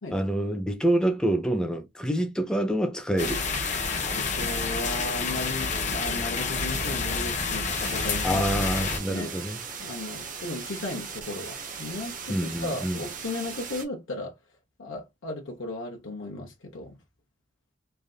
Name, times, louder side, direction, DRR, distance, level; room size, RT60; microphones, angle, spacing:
voice 1, 0.1-3.4 8.2-9.6 12.3-13.0, right 1 dB, 5° left, 0.6 m, -26 dB
sound 1, 3.2-9.0, left 4 dB, 40° left, 0.8 m, -29 dB
voice 2, 3.8-8.4 8.8-9.4 9.8-14.4 14.8-17.0, left 2 dB, 85° left, 0.8 m, -36 dB
sound 2, 7.7-13.9, right 6 dB, 45° right, 0.6 m, -38 dB
3.3 x 2.5 x 2.3 m
head